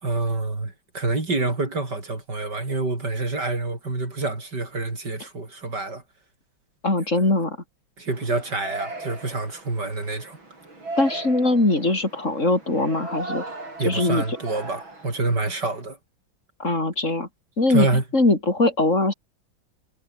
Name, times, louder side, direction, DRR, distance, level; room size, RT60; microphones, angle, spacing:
voice 1, 0.0-6.0 7.2-7.3 8.0-10.4 13.8-16.0 17.7-18.0, right 3 dB, 55° right, 5.9 m, -27 dB
voice 2, 6.8-7.6 11.0-13.4 13.9-14.2 16.6-17.3 17.6-19.1, left 2 dB, 35° left, 5.2 m, -21 dB
Yell, 8.1-15.8, right 2 dB, 90° right, 8.4 m, -37 dB
omnidirectional pair, 2.1 m